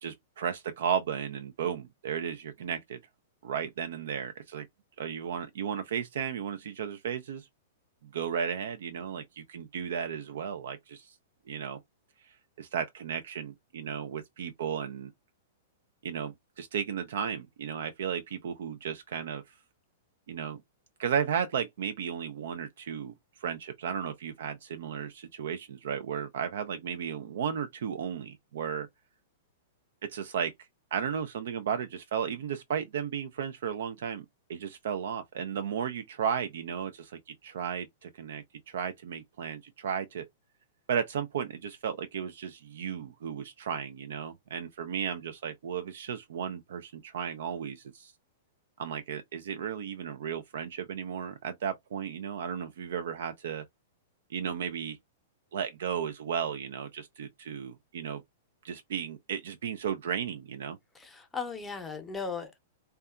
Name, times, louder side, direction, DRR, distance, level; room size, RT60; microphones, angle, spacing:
voice 1, 0.0-3.0 3.4-4.7 5.0-7.5 8.1-11.2 11.5-11.8 12.2-15.1 16.0-19.5 20.3-20.6 21.0-28.9 30.0-30.5 30.9-40.2 40.9-48.1 48.8-53.6 54.3-55.0 55.5-58.2 58.6-60.8, right 8 dB, 70° right, 0.3 m, -34 dB
voice 2, 61.0-62.6, left 5 dB, 10° left, 0.6 m, -37 dB
2.7 x 2.2 x 2.2 m
hypercardioid pair, 115°, 0 cm